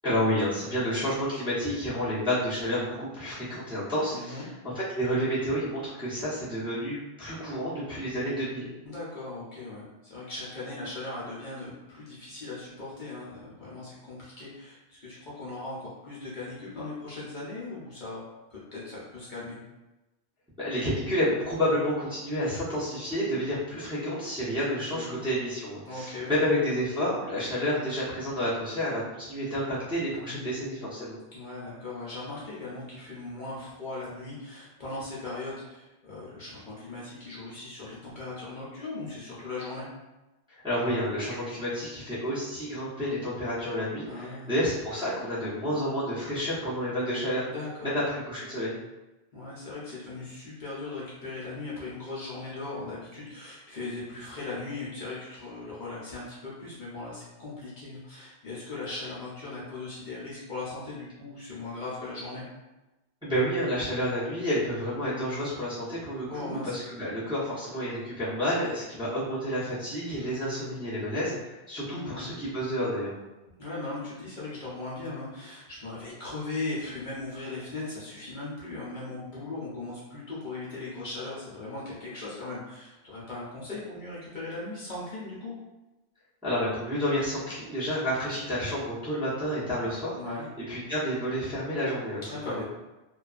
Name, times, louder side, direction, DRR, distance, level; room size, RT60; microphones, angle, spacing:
voice 1, 0.0-4.5 4.7-8.7 20.6-31.2 40.6-47.5 47.8-48.8 63.2-73.1 86.4-90.2 90.7-92.6, equal, 5° right, -11 dB, 0.8 m, -30 dB
voice 2, 4.1-4.4 8.8-18.2 18.5-19.6 24.9-25.2 25.9-26.4 30.1-30.6 31.3-39.9 44.0-44.5 47.5-48.0 49.3-62.4 66.3-66.7 70.2-70.9 71.8-72.3 73.6-85.5 90.2-90.4 92.3-92.6, left 2 dB, 55° left, -8 dB, 0.8 m, -38 dB
2.6 x 2.3 x 2.4 m, 1.0 s
omnidirectional pair, 1.1 m